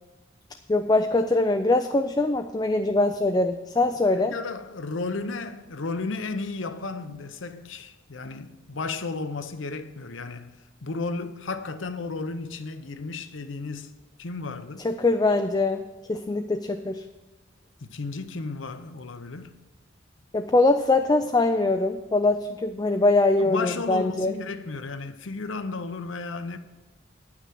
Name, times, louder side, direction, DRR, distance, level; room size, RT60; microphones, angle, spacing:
voice 1, 0.7-4.3 14.8-15.8 16.1-17.0 20.3-24.3, left 2 dB, 20° left, 0.4 m, -22 dB
voice 2, 4.1-13.9 14.2-14.9 17.8-19.6 23.3-26.6, left 3 dB, 75° left, 0.8 m, -33 dB
9.6 x 5.9 x 7.6 m
head